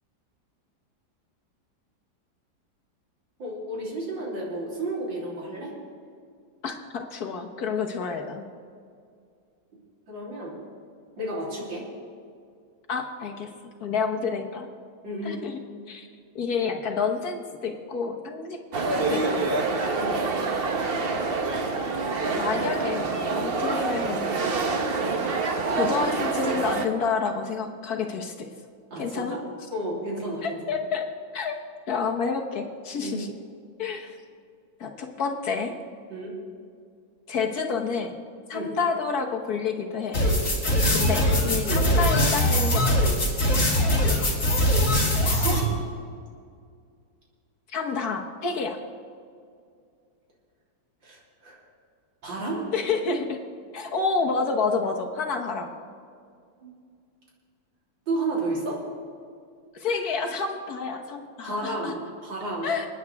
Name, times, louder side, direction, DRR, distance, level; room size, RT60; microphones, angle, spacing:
voice 1, 3.4-5.7 10.1-10.6 11.2-11.8 15.0-15.4 20.0-20.2 28.9-29.4 29.7-30.8 33.0-33.2 36.1-36.3 38.5-38.7 41.6-41.8 45.0-45.1 45.4-45.7 51.0-51.6 52.2-52.6 56.6-56.7 58.1-58.8 61.4-62.7, right 2 dB, 75° right, -5 dB, 3.9 m, -32 dB
voice 2, 6.6-8.5 12.9-13.5 13.8-14.7 15.2-15.6 15.9-16.1 16.3-18.6 19.1-19.5 22.4-24.5 25.7-28.5 29.0-29.4 30.4-31.0 31.3-31.6 31.9-33.3 33.8-34.2 34.8-35.7 37.3-38.1 38.5-40.2 40.9-43.1 47.7-48.8 52.7-53.4 53.7-55.7 59.7-61.9 62.6-62.9, left 5 dB, 55° left, 2 dB, 1.5 m, -29 dB
sound 1, 18.7-26.9, right 3 dB, 45° right, 0.8 m, -26 dB
sound 2, 40.1-45.6, equal, 40° left, 3.1 m, -22 dB
28.0 x 9.5 x 3.5 m, 2.2 s
omnidirectional pair, 2.1 m